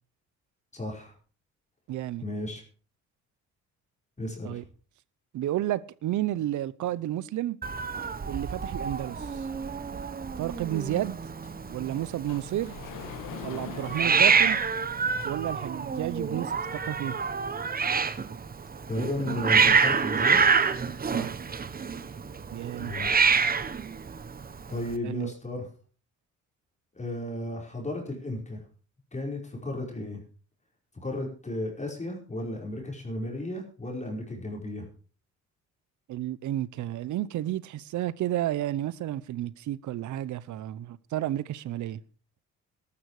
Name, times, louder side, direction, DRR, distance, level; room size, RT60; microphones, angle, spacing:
voice 1, 0.7-1.1 2.2-2.6 4.2-4.6 18.9-20.4 22.8-23.3 24.7-25.7 26.9-28.6 29.1-30.2 31.0-34.9, left 1 dB, 25° left, 5.1 m, -34 dB
voice 2, 1.9-2.2 4.4-4.6 5.3-7.6 8.3-9.5 10.4-11.2 11.7-12.7 13.4-14.6 15.2-16.6 16.8-17.2 21.0-21.4 22.5-22.9 25.0-25.3 36.1-42.0, right 13 dB, 75° right, 0.8 m, -31 dB
Hiss, 7.6-25.0, right 5 dB, 30° right, 1.1 m, -27 dB
Sliding door, 10.7-15.7, left 11 dB, 85° left, 1.5 m, -45 dB
13.5 x 12.5 x 4.9 m
cardioid pair, 90°, 30 cm